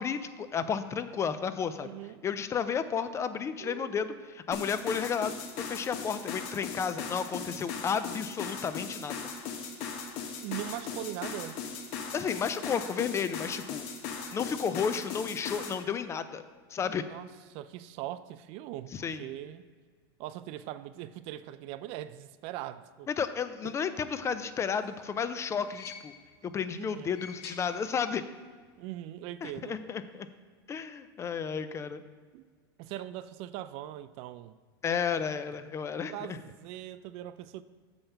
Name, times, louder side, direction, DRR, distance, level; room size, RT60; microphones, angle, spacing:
voice 1, 0.0-1.9 2.2-9.2 12.1-13.8 14.3-16.4 16.7-17.0 18.9-19.2 23.1-26.1 26.4-28.2 29.4-30.3 30.7-32.0 34.8-36.4, left 6 dB, 20° left, 12 dB, 0.4 m, -32 dB
voice 2, 1.8-2.2 3.6-4.4 10.4-11.6 16.9-19.6 20.2-23.1 23.6-23.7 26.7-27.1 28.8-29.8 32.3-32.4 32.8-34.5 36.1-37.6, right 13 dB, 50° right, 14 dB, 0.4 m, -41 dB
sound 1, 4.5-15.8, left 5 dB, 55° left, 1.3 m, -38 dB
sound 2, 24.5-26.5 26.9-28.4 28.6-28.7 29.8-29.9, left 6 dB, 75° left, 1.3 m, -50 dB
7.0 x 5.3 x 5.7 m, 1.5 s
supercardioid pair, 130°, 13 cm